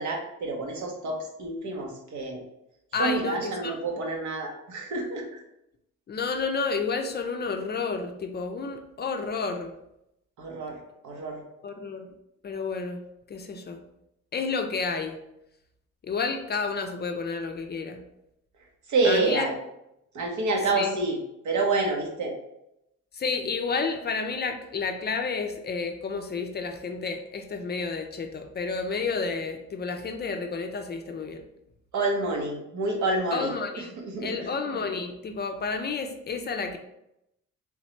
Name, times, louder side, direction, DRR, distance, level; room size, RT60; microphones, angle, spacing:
voice 1, 0.0-2.4 3.0-5.4 10.4-10.8 11.0-11.4 18.9-19.5 20.1-21.2 21.4-22.4 31.9-33.5 34.1-34.5, right 3 dB, 75° right, 1 dB, 1.0 m, -28 dB
voice 2, 2.9-3.8 6.1-9.7 11.6-12.1 12.4-13.8 14.3-15.2 16.0-18.0 19.0-19.5 20.7-20.9 23.1-31.4 33.3-36.8, left 4 dB, 35° left, 6 dB, 0.4 m, -31 dB
3.5 x 3.1 x 3.1 m, 0.84 s
cardioid pair, 90°, 30 cm